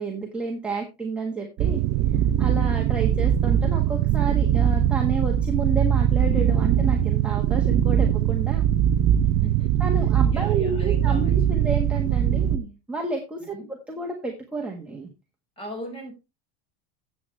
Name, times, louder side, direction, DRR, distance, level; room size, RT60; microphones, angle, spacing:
voice 1, 0.0-1.8 2.4-8.6 9.8-15.1, right 3 dB, 5° right, 1.4 m, -30 dB
sound 1, 1.6-12.6, right 10 dB, 35° right, 0.5 m, -21 dB
voice 2, 9.2-9.7 10.3-11.7 13.4-13.7 15.6-16.1, equal, 15° left, 5.1 m, -39 dB
14.0 x 8.2 x 3.2 m
cardioid pair, 175°, 32 cm